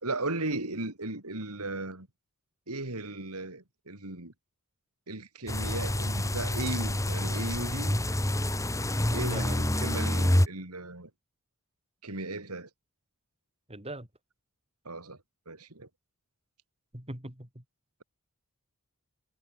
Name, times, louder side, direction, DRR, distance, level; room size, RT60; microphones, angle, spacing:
voice 1, 0.0-2.1 2.7-4.3 5.1-8.0 9.1-11.1 12.0-12.7 14.8-15.2 15.5-15.9, right 2 dB, 80° right, 4.2 m, -36 dB
sound 1, 5.5-10.5, left 1 dB, 15° left, 1.9 m, -27 dB
voice 2, 9.2-9.6 13.7-14.1 16.9-17.6, right 1 dB, 25° right, 4.8 m, -41 dB
head